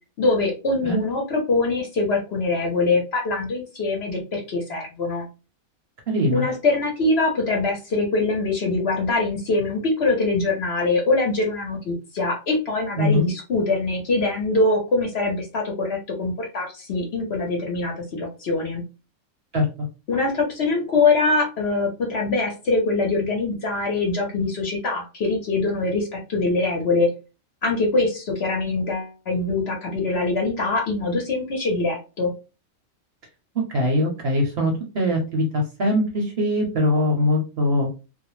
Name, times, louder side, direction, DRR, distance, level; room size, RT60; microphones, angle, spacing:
voice 1, 0.2-5.3 6.3-18.8 20.1-27.1 27.6-32.3, left 3 dB, 55° left, 0 dB, 0.9 m, -23 dB
voice 2, 6.1-6.5 13.0-13.3 19.5-19.7 33.7-37.9, left 1 dB, 55° right, 1 dB, 0.8 m, -22 dB
2.5 x 2.0 x 3.0 m, 0.31 s
omnidirectional pair, 1.5 m